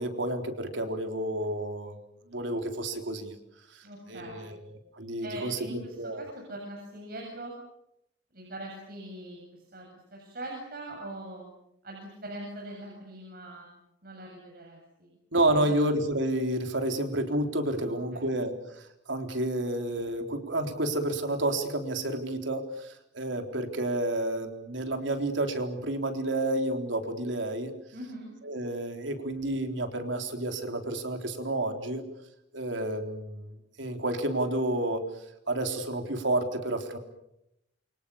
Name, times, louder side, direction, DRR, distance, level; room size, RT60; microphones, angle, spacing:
voice 1, 0.0-2.0 2.3-3.3 3.7-3.8 4.1-4.6 4.9-6.3 15.3-27.7 28.4-32.0 32.5-35.0 35.5-37.0, right 1 dB, 80° right, 5 dB, 3.9 m, -30 dB
voice 2, 3.8-4.6 5.2-7.5 8.3-11.5 11.8-13.7 14.0-15.1 15.5-15.8 17.8-18.3 27.9-28.3, right 1 dB, 55° right, 0 dB, 7.8 m, -42 dB
28.5 x 24.5 x 7.1 m, 0.82 s
head